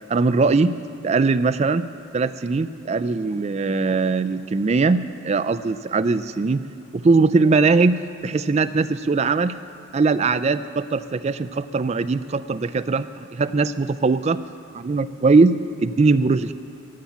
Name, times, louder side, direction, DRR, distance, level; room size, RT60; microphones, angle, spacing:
voice 1, 0.1-0.7 1.0-1.9 2.1-6.6 6.9-9.5 9.9-14.4 14.7-16.5, right 3 dB, 30° right, 12 dB, 0.3 m, -20 dB
14.0 x 7.0 x 9.2 m, 2.5 s
head